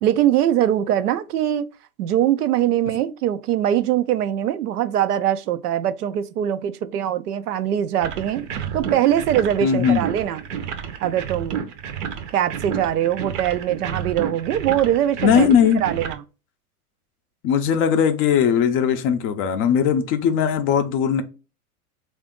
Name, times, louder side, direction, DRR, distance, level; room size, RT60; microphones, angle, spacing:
voice 1, 0.0-1.7 2.0-10.4 11.0-11.7 12.3-15.5 15.8-16.2, right 11 dB, 85° right, 0.6 m, -22 dB
sound 1, 8.0-16.1, right 7 dB, 50° right, 0.7 m, -31 dB
voice 2, 9.6-10.0 15.2-15.8 17.4-21.2, left 8 dB, 30° left, 0.4 m, -19 dB
3.4 x 2.5 x 3.6 m
hypercardioid pair, 105°, 44 cm